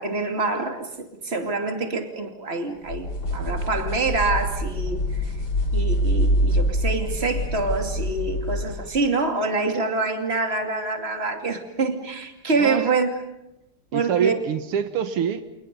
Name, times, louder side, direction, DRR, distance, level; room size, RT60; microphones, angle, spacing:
voice 1, 0.0-5.0 5.7-13.1 13.9-14.4, right 3 dB, 30° right, 5 dB, 2.8 m, -26 dB
sound 1, 2.9-8.9, equal, 55° left, 5.5 m, -25 dB
voice 2, 13.9-15.4, right 8 dB, 80° right, 10 dB, 2.1 m, -25 dB
30.0 x 28.5 x 5.4 m, 0.89 s
omnidirectional pair, 2.4 m